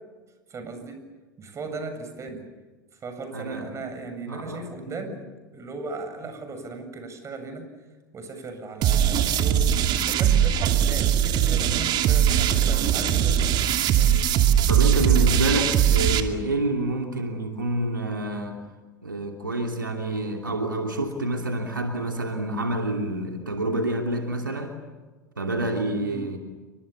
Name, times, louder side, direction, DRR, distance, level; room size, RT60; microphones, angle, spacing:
voice 1, 0.5-1.0 1.4-2.4 3.0-5.3 5.5-7.6 8.1-9.7 10.1-13.4 13.9-14.3 26.0-26.2, right 3 dB, 30° right, 7 dB, 7.7 m, -37 dB
voice 2, 3.3-3.7 4.3-5.1 14.5-18.6 19.0-24.7 25.4-26.4, right 1 dB, 90° right, 3 dB, 2.8 m, -28 dB
sound 1, 8.8-16.2, right 9 dB, 45° right, 2.6 m, -20 dB
29.5 x 25.0 x 7.1 m, 1.3 s
figure-of-eight pair, 85°, 11 cm